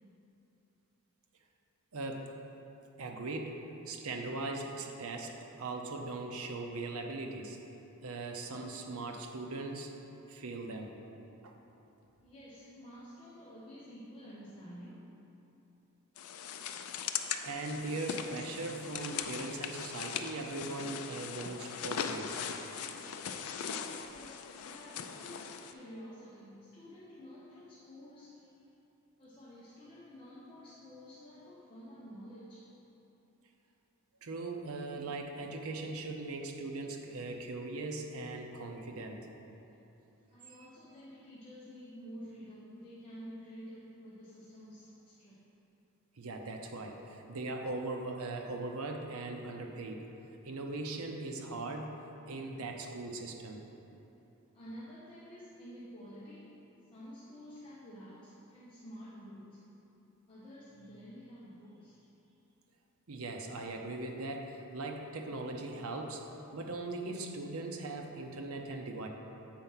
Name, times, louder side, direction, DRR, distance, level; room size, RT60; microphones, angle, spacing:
voice 1, 1.9-2.3 3.0-7.6 8.0-9.9 10.3-11.0 11.4-11.5 17.4-22.5 34.2-39.2 46.2-50.0 50.4-51.9 52.3-53.6 63.1-66.3 66.5-69.1, right 2 dB, 70° right, 3 dB, 0.7 m, -40 dB
voice 2, 12.2-15.1 23.6-28.7 29.2-32.8 40.3-45.4 54.5-56.6 56.9-59.6 60.3-62.3, equal, 25° left, -9 dB, 1.0 m, -50 dB
sound 1, 16.2-25.7, left 7 dB, 75° left, 0.4 m, -40 dB
7.5 x 4.4 x 5.6 m, 3.0 s
head